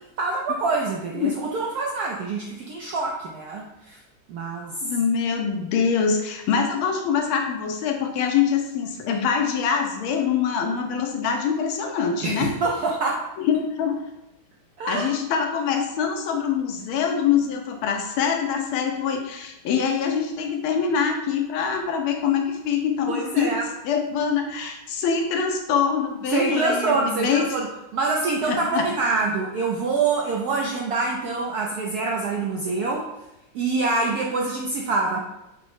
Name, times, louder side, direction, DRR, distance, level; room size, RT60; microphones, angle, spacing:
voice 1, 0.2-4.0 4.3-4.7 12.2-13.3 14.8-15.1 23.1-23.7 26.3-27.7 27.9-33.1 33.5-35.2, right 3 dB, 85° right, -1 dB, 0.8 m, -25 dB
voice 2, 4.8-12.5 13.4-14.0 14.9-23.5 23.8-27.4 28.5-28.9, left 6 dB, 85° left, 3 dB, 1.6 m, -24 dB
5.2 x 2.0 x 4.7 m, 0.91 s
omnidirectional pair, 2.3 m